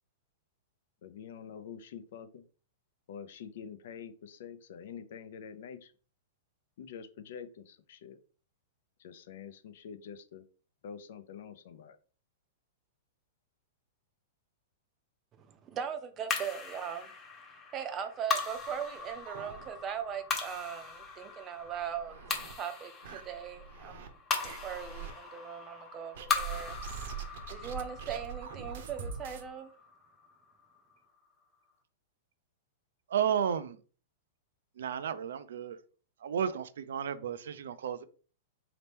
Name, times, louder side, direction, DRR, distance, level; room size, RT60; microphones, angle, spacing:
voice 1, 1.0-2.4 3.1-5.9 6.8-8.2 9.0-10.4 10.8-12.0, left 7 dB, 65° left, 0.6 m, -46 dB
voice 2, 15.4-17.1 17.7-22.2 22.6-24.1 24.4-26.8 27.5-29.7, right 8 dB, 25° right, 0.6 m, -39 dB
sound 1, 16.3-30.8, left 4 dB, 20° left, 1.0 m, -39 dB
sound 2, 18.5-20.1 20.4-20.5 20.9-21.0 21.6-22.5 23.0-24.1 24.4-25.1 26.1-29.5, right 7 dB, 65° right, 0.8 m, -43 dB
voice 3, 33.1-33.8 34.8-35.8 36.2-38.0, right 8 dB, 80° right, 0.4 m, -32 dB
4.2 x 2.9 x 3.4 m
hypercardioid pair, 145°, 0 cm